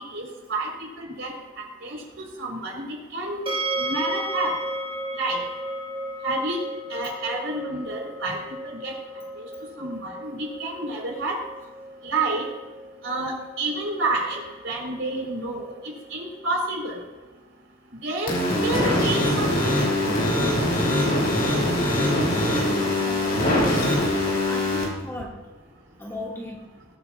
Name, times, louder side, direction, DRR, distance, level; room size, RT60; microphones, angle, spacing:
voice 1, 0.1-1.3 1.8-2.0 2.4-4.5 5.2-5.4 6.2-6.6 6.9-9.0 9.4-9.5 9.8-11.4 12.0-12.4 13.0-17.0 18.0-18.3 18.6-19.7, right 2 dB, 60° right, -2 dB, 4.5 m, -29 dB
sound 1, 3.5-16.4, right 1 dB, 25° right, 1.5 m, -35 dB
sound 2, 18.3-24.8, left 1 dB, 45° left, 4.1 m, -22 dB
voice 2, 23.0-23.9 24.5-25.4 26.0-26.6, left 1 dB, 10° left, -3 dB, 2.2 m, -35 dB
22.5 x 9.2 x 2.5 m, 1.3 s
head